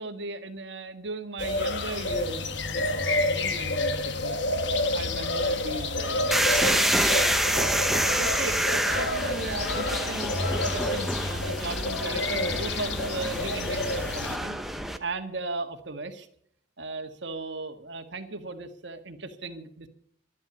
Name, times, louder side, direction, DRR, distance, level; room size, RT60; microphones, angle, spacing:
voice 1, 0.0-4.4 4.8-6.8 7.9-14.6 15.0-16.3 16.8-19.9, right 3 dB, 65° right, 7 dB, 1.6 m, -37 dB
sound 1, 1.4-14.4, left 2 dB, 65° left, 1.2 m, -29 dB
sound 2, 6.3-15.0, right 1 dB, ahead, 0.8 m, -28 dB
12.5 x 11.5 x 7.1 m, 0.65 s
head